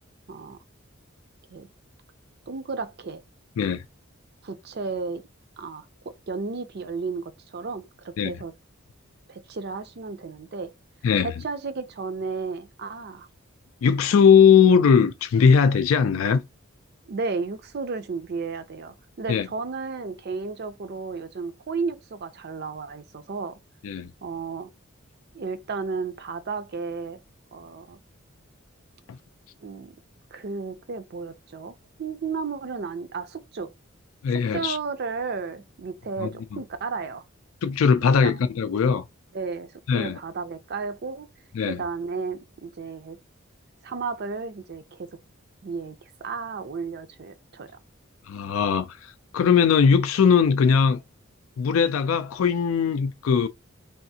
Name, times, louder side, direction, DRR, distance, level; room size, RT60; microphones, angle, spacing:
voice 1, 0.3-0.6 1.5-1.7 2.5-3.2 4.4-5.2 5.6-8.5 9.3-10.7 11.2-13.3 17.1-23.6 24.2-24.7 25.3-27.2 27.5-28.0 29.6-30.0 30.3-33.7 34.3-37.2 38.2-38.3 39.3-41.3 41.7-43.2 43.8-45.1 45.6-47.7, right 4 dB, 50° right, 0.5 m, -33 dB
voice 2, 13.8-16.4 19.3-19.5 23.8-24.1 34.2-34.8 36.2-36.3 37.6-39.0 39.9-40.2 41.5-41.8 48.3-51.0 51.6-53.5, left 6 dB, 80° left, 0.4 m, -19 dB
3.4 x 2.4 x 2.7 m
head